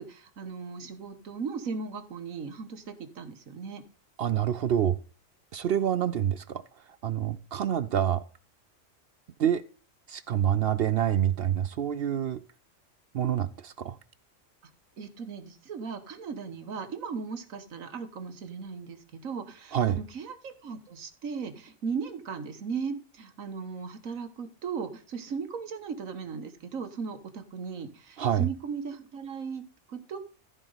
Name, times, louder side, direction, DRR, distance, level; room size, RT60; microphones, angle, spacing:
voice 1, 0.0-3.8 15.0-30.2, right 5 dB, 85° right, 1.6 m, -37 dB
voice 2, 4.2-5.0 5.5-6.6 7.0-8.2 9.4-9.6 10.1-12.4 13.1-14.0 19.7-20.0 28.2-28.5, right 10 dB, 60° right, 0.6 m, -27 dB
14.5 x 4.9 x 3.9 m
omnidirectional pair, 1.4 m